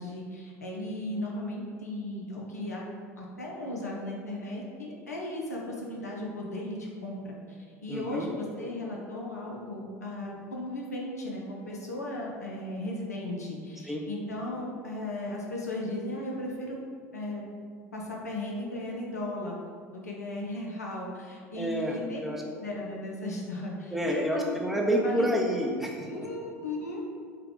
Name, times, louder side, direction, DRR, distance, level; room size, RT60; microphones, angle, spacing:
voice 1, 0.0-2.8 3.2-16.8 17.1-17.4 17.9-19.6 19.9-22.2 22.6-24.6 24.9-25.3 26.1-27.0, left 1 dB, 90° left, -2 dB, 0.6 m, -36 dB
voice 2, 7.9-8.3 13.8-14.0 21.5-22.4 23.9-26.3, equal, 5° right, -1 dB, 0.6 m, -29 dB
3.6 x 2.2 x 3.6 m, 2.1 s
figure-of-eight pair, 75°, 8 cm